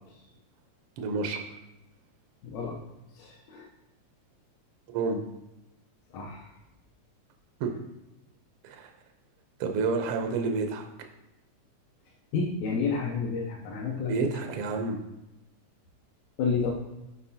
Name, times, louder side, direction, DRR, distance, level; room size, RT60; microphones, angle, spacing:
voice 1, 1.0-1.4 4.9-5.2 7.6-7.7 8.6-8.9 9.6-10.8 14.1-15.0, right 4 dB, 85° right, 4 dB, 1.2 m, -29 dB
voice 2, 2.4-2.8 3.2-3.7 6.1-6.5 12.3-14.3 16.4-16.7, left 5 dB, 85° left, -3 dB, 2.1 m, -30 dB
7.6 x 4.9 x 2.8 m, 0.96 s
omnidirectional pair, 3.3 m